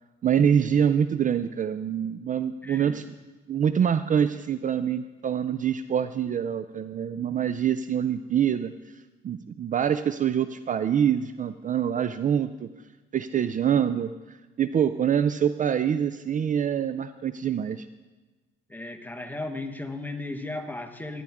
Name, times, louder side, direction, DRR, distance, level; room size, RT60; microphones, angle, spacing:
voice 1, 0.2-3.1 3.5-8.7 9.2-12.7 13.1-17.9, right 8 dB, 40° right, 12 dB, 0.4 m, -25 dB
voice 2, 2.6-3.0 18.7-21.2, left 2 dB, 10° left, 6 dB, 1.2 m, -35 dB
15.0 x 10.5 x 3.6 m, 1.2 s
cardioid pair, 90°, 20 cm